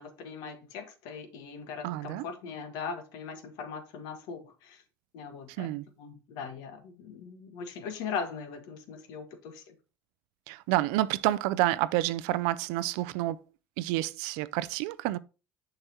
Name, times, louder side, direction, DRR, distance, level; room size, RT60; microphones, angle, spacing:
voice 1, 0.0-4.8 5.1-5.7 6.0-9.7, left 6 dB, 75° left, 1.5 m, -40 dB
voice 2, 1.8-2.2 5.6-5.8 10.5-13.4 13.8-15.2, right 16 dB, 80° right, 0.4 m, -29 dB
6.5 x 5.9 x 2.9 m
supercardioid pair, 100°, 7 cm